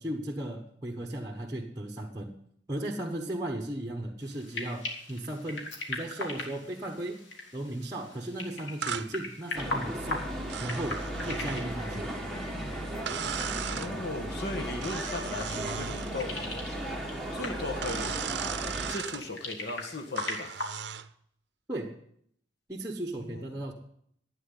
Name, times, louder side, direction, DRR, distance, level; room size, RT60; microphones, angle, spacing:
voice 1, 0.0-2.3 2.7-7.2 7.5-10.3 10.6-12.1 21.7-21.9 22.7-23.7, right 1 dB, 20° right, 1 dB, 1.1 m, -36 dB
sound 1, 4.2-20.7, left 2 dB, 80° left, 2.9 m, -41 dB
sound 2, 8.8-9.1 10.5-11.7 13.1-13.9 14.8-16.1 17.8-19.2 20.2-21.1, right 8 dB, 65° right, 0.6 m, -37 dB
sound 3, 9.5-18.9, equal, ahead, 1.8 m, -36 dB
voice 2, 13.7-16.4 17.3-18.1 18.6-20.5 23.2-23.6, left 2 dB, 60° left, 3 dB, 1.6 m, -37 dB
12.5 x 9.0 x 9.9 m, 0.70 s
head